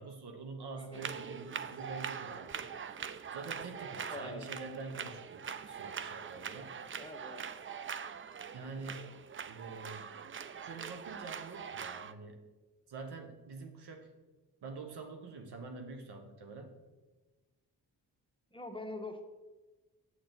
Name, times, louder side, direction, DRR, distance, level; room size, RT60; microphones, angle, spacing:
voice 1, 0.0-2.7 3.3-6.8 8.5-9.1 9.5-10.1 10.6-12.4 12.9-14.1 14.6-16.8, right 4 dB, 75° right, 4 dB, 1.2 m, -46 dB
voice 2, 0.8-1.1 4.1-4.4 7.0-7.5 18.5-19.2, left 1 dB, 15° left, 4 dB, 1.1 m, -44 dB
sound 1, 0.9-12.1, right 7 dB, 30° right, 0.4 m, -43 dB
7.7 x 6.7 x 4.0 m, 1.2 s
cardioid pair, 55°, 40 cm